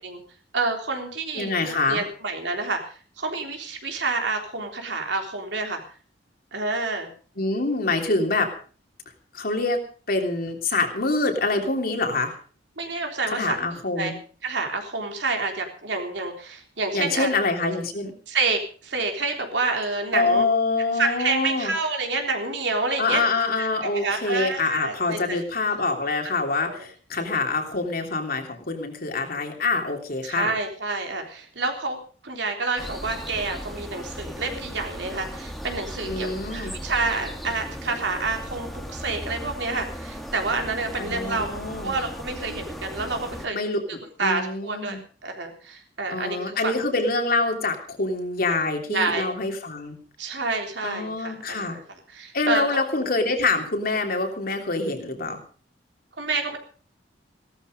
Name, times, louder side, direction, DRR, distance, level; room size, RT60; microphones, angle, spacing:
voice 1, 0.5-5.8 6.5-7.1 12.8-13.6 14.0-14.1 14.4-17.3 17.7-17.8 18.3-20.5 21.0-23.3 23.6-25.4 26.7-26.8 30.2-41.5 41.8-43.6 44.2-46.7 48.9-49.3 50.2-51.8 52.1-52.8 56.2-56.6, right 3 dB, 70° right, 4 dB, 3.6 m, -28 dB
voice 2, 1.3-2.0 7.4-8.5 9.3-9.8 10.1-12.4 13.3-14.1 16.9-18.1 20.1-21.7 23.0-30.5 36.0-36.7 41.0-41.9 43.5-43.8 44.2-45.0 46.1-49.9 50.8-51.8 52.3-55.4, left 3 dB, 55° left, 4 dB, 3.1 m, -25 dB
sound 1, 32.8-43.5, equal, ahead, 2.0 m, -37 dB
17.0 x 13.0 x 5.2 m, 0.41 s
head